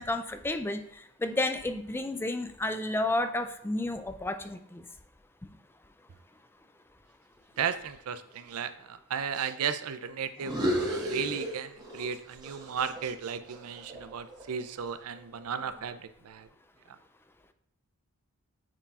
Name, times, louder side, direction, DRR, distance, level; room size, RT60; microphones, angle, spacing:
voice 1, 0.0-4.8, left 2 dB, 10° left, 8 dB, 0.4 m, -31 dB
voice 2, 7.6-16.0 16.2-16.5, right 7 dB, 70° right, 11 dB, 0.4 m, -35 dB
sound 1, 10.4-12.1 12.4-14.6, equal, 20° right, 1.3 m, -33 dB
8.7 x 4.6 x 2.5 m, 0.73 s
head